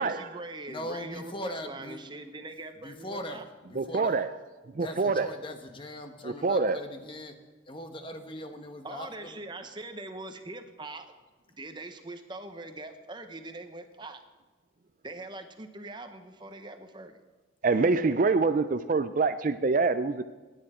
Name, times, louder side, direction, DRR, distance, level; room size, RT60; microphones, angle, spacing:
voice 1, 0.0-3.5 8.8-11.1 11.5-14.2 15.0-17.2, right 2 dB, 25° right, 8 dB, 0.8 m, -42 dB
voice 2, 0.7-2.0 2.8-3.4 3.7-4.2 4.8-7.3 7.7-9.3, left 1 dB, 25° left, 6 dB, 1.0 m, -40 dB
voice 3, 3.8-4.4 4.7-5.3 6.2-6.8 17.6-20.2, right 4 dB, 45° right, 11 dB, 0.4 m, -25 dB
17.0 x 10.0 x 4.4 m, 1.3 s
head